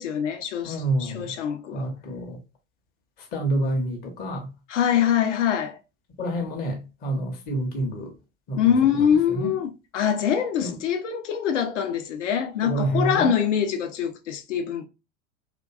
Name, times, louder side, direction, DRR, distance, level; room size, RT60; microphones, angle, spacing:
voice 1, 0.0-1.9 4.7-5.8 8.6-14.8, left 8 dB, 65° left, 0.6 m, -24 dB
voice 2, 0.6-1.3 1.7-2.4 3.2-4.5 6.2-8.1 8.5-9.5 10.6-10.8 12.6-13.3, right 1 dB, 25° left, 0.6 m, -28 dB
2.5 x 2.2 x 2.3 m
figure-of-eight pair, 85°, 39 cm